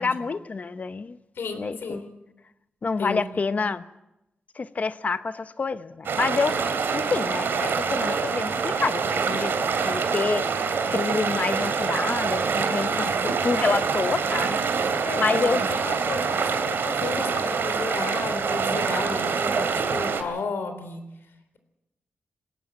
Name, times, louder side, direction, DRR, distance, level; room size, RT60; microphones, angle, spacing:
voice 1, 0.0-1.2 1.5-2.0 2.8-3.8 4.6-6.6 6.9-9.5 9.8-14.6 15.2-15.8, left 4 dB, 40° left, 0.8 m, -27 dB
voice 2, 1.4-2.0 3.0-3.2 12.9-13.2 13.4-13.5 15.0-19.7 19.9-21.0, left 4 dB, 75° left, 3.6 m, -33 dB
sound 1, 6.0-20.2, right 5 dB, 75° right, 2.5 m, -25 dB
20.5 x 17.5 x 7.7 m
wide cardioid pair, 110°, 4 cm